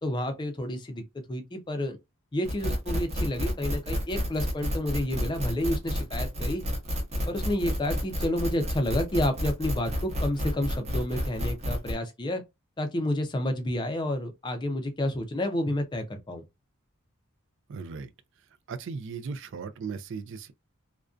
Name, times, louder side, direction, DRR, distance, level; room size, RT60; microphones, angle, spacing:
voice 1, 0.0-2.0 2.3-6.6 7.3-12.4 12.8-16.4, left 1 dB, 20° left, 0.4 m, -30 dB
sound 1, 2.5-12.0, equal, 30° right, 0.7 m, -30 dB
voice 2, 17.7-18.1 18.7-20.5, right 5 dB, 55° right, 0.3 m, -37 dB
2.5 x 2.2 x 2.3 m
head